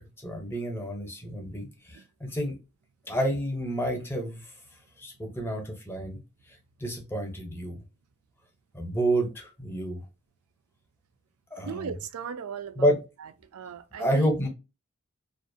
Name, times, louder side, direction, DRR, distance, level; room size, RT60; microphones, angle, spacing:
voice 1, 0.2-2.6 3.0-4.4 5.0-6.2 6.8-7.8 8.7-10.0 11.5-11.9 12.8-13.0 14.0-14.5, right 1 dB, 10° left, 0.7 m, -29 dB
voice 2, 11.7-14.4, right 6 dB, 80° right, 0.4 m, -38 dB
2.4 x 2.0 x 2.5 m
head